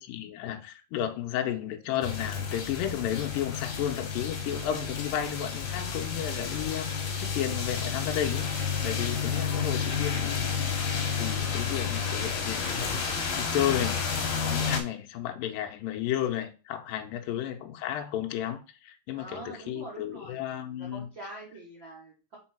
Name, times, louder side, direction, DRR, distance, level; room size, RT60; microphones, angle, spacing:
voice 1, 0.0-8.5 8.8-13.0 13.4-14.0 14.4-21.1, left 11 dB, 80° left, 2.1 m, -33 dB
sound 1, 2.0-14.8, left 6 dB, 65° left, 1.8 m, -31 dB
voice 2, 9.4-9.9 17.3-17.7 19.2-20.4 20.8-22.4, right 1 dB, 60° right, 1.2 m, -45 dB
5.5 x 4.5 x 4.4 m
omnidirectional pair, 4.8 m